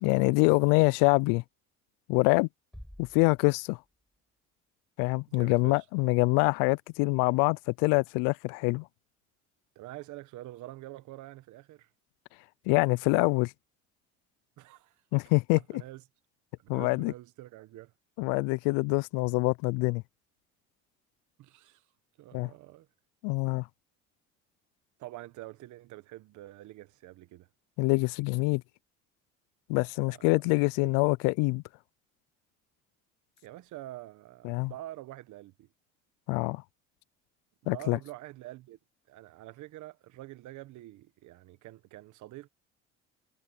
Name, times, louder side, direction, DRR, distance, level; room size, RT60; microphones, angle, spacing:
voice 1, 0.0-1.4 2.1-2.5 3.0-3.8 5.0-8.9 12.7-13.5 15.1-15.6 16.7-17.1 18.2-20.0 22.3-22.5 23.2-23.7 27.8-28.6 29.7-31.6 34.4-34.7 36.3-36.6 37.7-38.0, left 28 dB, 80° left, 0.5 m, -25 dB
sound 1, 2.7-4.7, equal, ahead, 4.9 m, -52 dB
voice 2, 5.3-5.9 9.7-11.9 14.6-15.2 15.5-16.0 16.6-17.9 21.4-21.8 22.2-22.9 25.0-27.5 30.1-30.4 30.8-30.9 33.4-35.7 37.6-38.8 39.1-42.5, right 16 dB, 65° right, 1.3 m, -46 dB
supercardioid pair, 90°, 31 cm